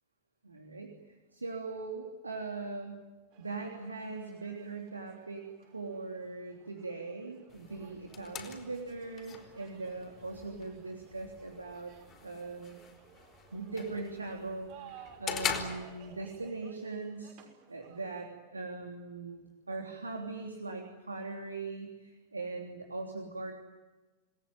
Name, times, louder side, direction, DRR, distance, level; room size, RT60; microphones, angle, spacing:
voice 1, 0.4-3.0 3.4-5.4 5.7-11.9 12.2-12.7 13.5-17.3 17.7-23.5, right 3 dB, 80° right, 2 dB, 3.2 m, -40 dB
sound 1, 3.3-18.3, right 8 dB, 45° right, 6.0 m, -58 dB
sound 2, 7.5-16.5, left 7 dB, 30° left, 4.6 m, -43 dB
28.5 x 20.0 x 9.5 m, 1.2 s
figure-of-eight pair, 90°, 0 cm